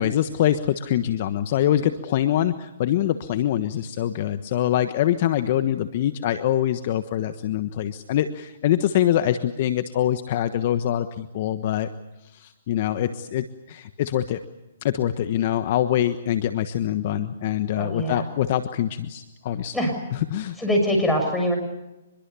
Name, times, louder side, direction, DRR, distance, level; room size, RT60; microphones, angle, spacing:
voice 1, 0.0-11.9 12.3-14.4 14.8-19.7 20.3-20.5, left 11 dB, 45° left, 10 dB, 1.3 m, -24 dB
voice 2, 17.8-18.2 19.7-19.9 20.6-21.6, equal, 5° left, 1 dB, 6.7 m, -23 dB
26.0 x 22.0 x 7.0 m, 0.98 s
hypercardioid pair, 145°, 0 cm